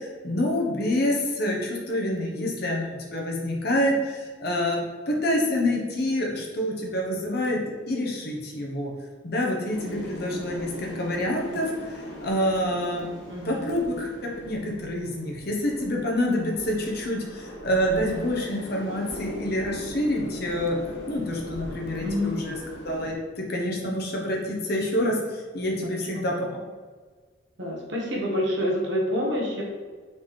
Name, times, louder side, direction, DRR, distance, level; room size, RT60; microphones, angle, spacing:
voice 1, 0.0-8.9 9.2-13.1 13.4-14.1 14.5-20.8 21.1-22.6 22.8-26.6, left 1 dB, 50° left, -1 dB, 0.9 m, -27 dB
sound 1, 9.7-23.1, equal, 70° left, 1.2 m, -40 dB
voice 2, 13.3-13.7 22.0-22.3 26.1-26.2 27.6-29.6, equal, 65° right, -2 dB, 1.1 m, -27 dB
4.1 x 3.9 x 3.1 m, 1.5 s
head